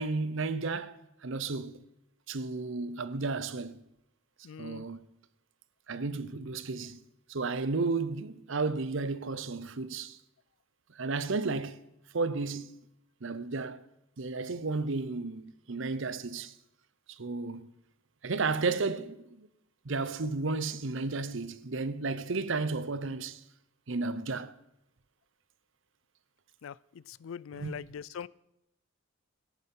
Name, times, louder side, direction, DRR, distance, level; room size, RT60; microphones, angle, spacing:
voice 1, 0.0-1.8 2.3-3.8 4.6-5.0 5.9-7.0 7.3-10.2 10.9-11.8 12.1-12.8 13.2-13.8 14.2-16.5 17.1-17.7 18.2-19.5 19.8-23.4 23.9-24.6 27.5-27.8, right 3 dB, 65° right, 0.8 m, -33 dB
voice 2, 4.4-4.9 26.6-28.3, left 7 dB, 70° left, 0.4 m, -42 dB
14.0 x 10.5 x 5.5 m
head